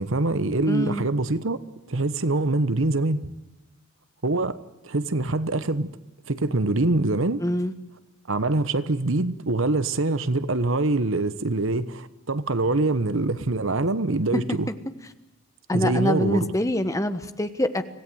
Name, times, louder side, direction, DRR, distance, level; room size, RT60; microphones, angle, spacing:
voice 1, 0.0-1.6 1.9-3.3 4.2-4.6 4.8-5.9 6.3-7.4 8.3-14.7 15.7-16.5, right 2 dB, 65° right, 14 dB, 1.1 m, -24 dB
voice 2, 0.7-1.1 7.4-7.7 14.3-14.6 15.7-17.8, left 1 dB, 15° left, 10 dB, 1.3 m, -25 dB
25.5 x 17.5 x 9.3 m, 1.0 s
head